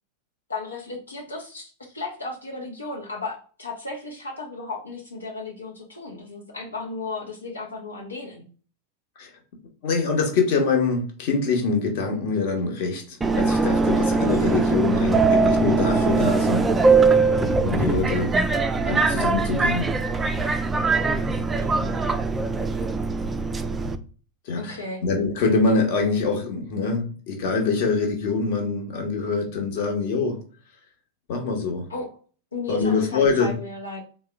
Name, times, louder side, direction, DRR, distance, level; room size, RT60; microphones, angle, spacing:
voice 1, 0.5-8.5 21.6-22.0 24.6-25.0 31.9-32.2 32.5-34.0, left 3 dB, 75° left, -1 dB, 0.8 m, -34 dB
voice 2, 9.8-16.7 17.6-18.4 18.8-19.9 24.5-30.4 31.3-31.9 32.7-33.5, left 4 dB, 50° left, 2 dB, 1.0 m, -24 dB
Subway metro underground, 13.2-24.0, right 3 dB, 15° right, 0.3 m, -21 dB
3.6 x 2.1 x 3.3 m, 0.39 s
figure-of-eight pair, 90°, 0 cm